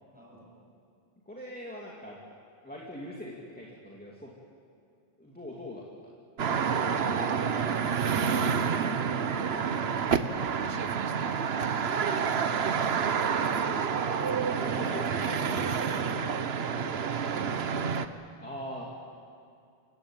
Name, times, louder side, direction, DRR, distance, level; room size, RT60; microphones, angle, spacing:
voice 1, 0.1-0.5 6.4-7.0 7.3-11.3 13.4-14.0 14.6-17.8, equal, 10° right, -3 dB, 7.3 m, -45 dB
voice 2, 1.3-2.2 2.6-4.3 5.2-6.1 12.1-13.1 14.6-15.4 17.7-17.8 18.4-18.9, left 1 dB, 10° left, -3 dB, 2.7 m, -42 dB
sound 1, 6.4-18.1, right 6 dB, 80° right, 1.2 m, -28 dB
28.5 x 17.0 x 9.0 m, 2.4 s
omnidirectional pair, 1.0 m